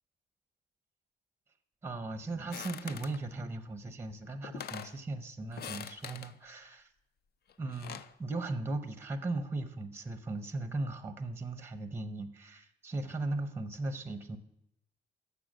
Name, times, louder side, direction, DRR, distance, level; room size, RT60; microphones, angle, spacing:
voice 1, 1.8-6.9 7.6-14.4, right 2 dB, 10° right, 9 dB, 0.6 m, -37 dB
sound 1, 2.5-3.2 4.1-4.2 4.4-5.0 5.5-6.3 7.5-8.1, left 8 dB, 55° left, 0.4 m, -43 dB
6.9 x 6.2 x 6.0 m, 0.83 s
cardioid pair, 90°, 20 cm